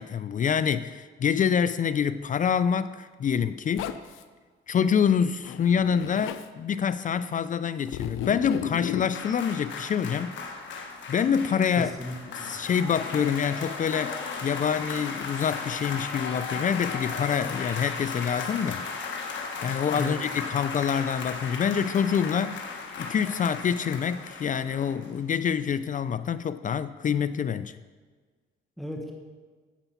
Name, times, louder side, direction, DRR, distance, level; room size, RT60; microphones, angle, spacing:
voice 1, 0.0-3.9 4.7-10.4 11.1-11.9 12.4-18.9 19.6-27.8, left 7 dB, 40° left, 0.4 m, -26 dB
Zipper (clothing), 3.8-4.2 5.4-6.5 7.9-9.1, left 9 dB, 90° left, 0.5 m, -34 dB
sound 1, 9.1-25.4 25.7-25.8, left 4 dB, 70° left, 1.6 m, -36 dB
voice 2, 11.7-12.6 19.9-20.1 28.8-29.1, left 1 dB, ahead, 1.4 m, -35 dB
10.0 x 8.2 x 5.6 m
cardioid pair, 90°, 20 cm